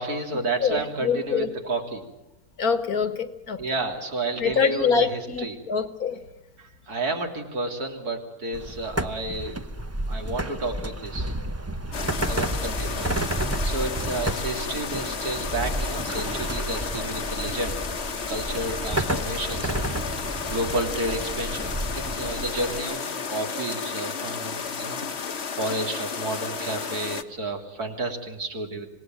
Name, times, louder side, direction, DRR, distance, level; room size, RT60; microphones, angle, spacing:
voice 1, 0.0-2.0 3.6-5.6 6.6-9.5 10.1-11.3 12.3-13.2 13.6-17.8 18.3-19.9 20.4-25.0 25.5-28.9, right 2 dB, 80° right, 3.6 m, -31 dB
voice 2, 0.6-1.5 2.6-3.6 4.4-6.2, left 6 dB, 70° left, 2.1 m, -25 dB
sound 1, 8.5-22.8, right 1 dB, 15° right, 0.6 m, -31 dB
sound 2, 11.9-27.2, left 6 dB, 50° left, 1.3 m, -32 dB
26.5 x 18.5 x 9.1 m
omnidirectional pair, 1.6 m